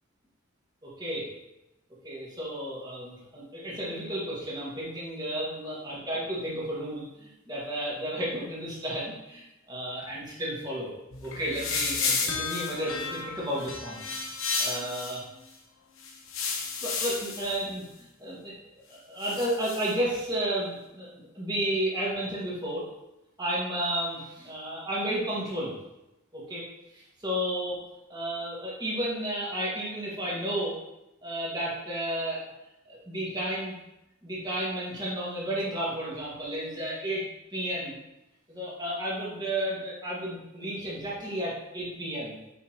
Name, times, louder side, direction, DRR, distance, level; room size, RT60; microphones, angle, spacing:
voice 1, 0.8-1.3 2.0-10.9 11.2-14.0 14.6-15.2 16.8-18.5 18.9-22.9 23.4-25.7 26.3-26.6 26.9-27.8 28.1-30.8 31.2-32.4 32.9-33.8 34.2-37.3 37.5-38.0 38.5-42.4, right 1 dB, 20° right, -6 dB, 1.8 m, -32 dB
sound 1, 11.1-15.2 16.0-17.6 19.2-19.9, left 4 dB, 80° left, 0.9 m, -32 dB
6.6 x 4.8 x 2.9 m, 0.93 s
head